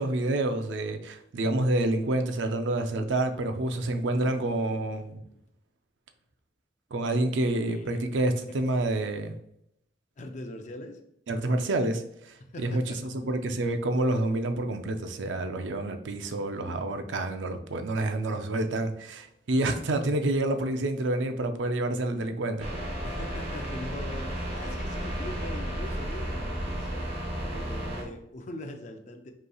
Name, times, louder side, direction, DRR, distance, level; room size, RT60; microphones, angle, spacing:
voice 1, 0.0-5.2 6.9-9.3 11.3-12.8 13.1-22.7, right 2 dB, 85° right, 7 dB, 0.5 m, -28 dB
voice 2, 3.7-4.6 4.9-5.4 7.7-8.1 8.6-8.7 10.2-11.0 12.4-13.0 23.0-27.1 27.5-29.3, left 1 dB, 40° left, 4 dB, 0.4 m, -42 dB
sound 1, 22.6-28.0, equal, 30° right, 1.1 m, -33 dB
5.2 x 3.1 x 2.3 m, 0.75 s
head